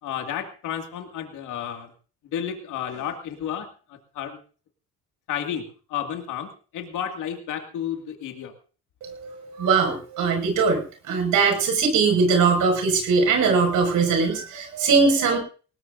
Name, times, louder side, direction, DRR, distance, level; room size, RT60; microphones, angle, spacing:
voice 1, 0.0-1.9 2.2-4.4 5.3-8.5, left 9 dB, 85° left, 4 dB, 2.3 m, -32 dB
voice 2, 9.0-15.4, right 4 dB, 80° right, 2 dB, 5.9 m, -21 dB
19.5 x 19.0 x 2.6 m, 0.39 s
cardioid pair, 90°, 30 cm